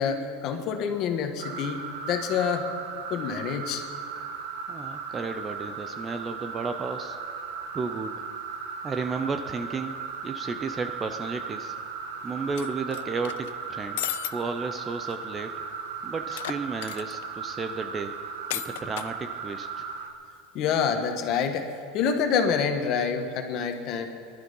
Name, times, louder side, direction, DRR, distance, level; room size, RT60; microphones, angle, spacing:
voice 1, 0.0-1.8 2.1-2.7 3.1-3.8 20.5-24.1, left 6 dB, 40° left, 5 dB, 1.4 m, -27 dB
sound 1, 1.4-20.1, right 5 dB, 90° right, 1.6 m, -37 dB
voice 2, 4.7-7.2 7.7-8.2 8.8-11.7 12.2-14.0 14.3-15.5 16.0-18.1 18.5-19.8, right 4 dB, 15° right, 8 dB, 0.5 m, -33 dB
sound 2, 12.6-13.5 14.0-14.3 14.7-14.8 15.1-15.2 16.3-17.2 18.5-19.1, left 15 dB, 80° left, 0.6 m, -34 dB
21.0 x 11.5 x 5.5 m, 2.3 s
supercardioid pair, 170°, 0 cm